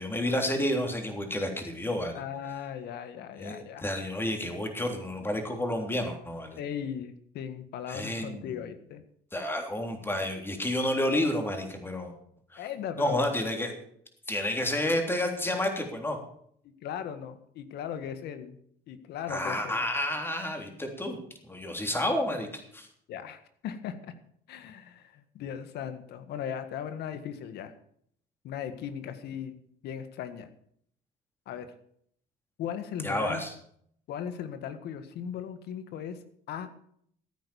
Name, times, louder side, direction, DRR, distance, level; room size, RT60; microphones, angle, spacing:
voice 1, 0.0-2.2 3.4-6.6 7.9-8.5 9.3-12.1 12.5-12.6 13.0-13.7 14.3-16.2 19.3-21.2 21.5-22.9 33.0-33.5, left 1 dB, 15° left, 4 dB, 3.4 m, -30 dB
voice 2, 2.1-3.9 6.6-9.0 12.6-13.3 16.6-18.6 18.9-19.8 23.1-24.1 24.5-27.7 28.4-30.5 31.5-31.7 32.6-33.4 34.1-36.2 36.5-36.8, left 8 dB, 75° left, 10 dB, 1.7 m, -38 dB
14.5 x 9.4 x 7.1 m, 0.66 s
cardioid pair, 110°, 17 cm